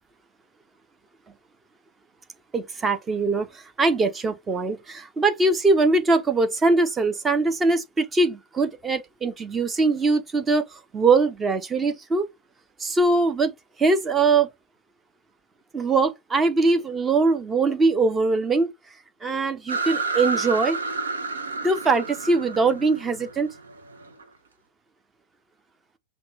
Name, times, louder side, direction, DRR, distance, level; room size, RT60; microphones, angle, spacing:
voice 1, 2.5-12.3 12.8-14.5 15.7-18.7 19.2-20.8 21.6-23.5, right 3 dB, 15° right, 0.9 m, -22 dB
sound 1, 19.7-24.2, right 3 dB, 70° right, 0.8 m, -30 dB
5.7 x 2.4 x 3.4 m
figure-of-eight pair, 90°, 0 cm